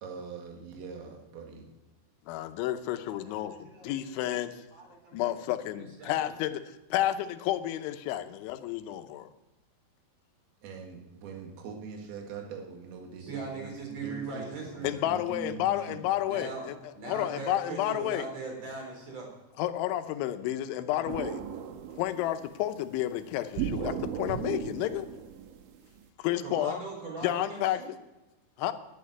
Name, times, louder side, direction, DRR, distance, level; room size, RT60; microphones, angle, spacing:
voice 1, 0.0-1.7 10.6-16.1, right 5 dB, 65° right, 1 dB, 3.7 m, -43 dB
voice 2, 2.3-4.5 5.1-9.3 14.8-16.8 17.1-18.3 19.6-21.4 22.0-25.1 26.2-26.8 27.2-27.8 28.6-28.7, left 13 dB, 85° left, 9 dB, 3.2 m, -31 dB
voice 3, 2.9-4.9 5.2-5.3 5.8-6.3 13.2-14.9 16.2-16.7 16.9-19.3 26.4-27.9, right 3 dB, 35° right, 0 dB, 4.8 m, -40 dB
sound 1, 21.1-22.5 23.6-26.0, right 8 dB, 80° right, 3.3 m, -36 dB
11.0 x 8.8 x 9.3 m, 1.1 s
omnidirectional pair, 5.3 m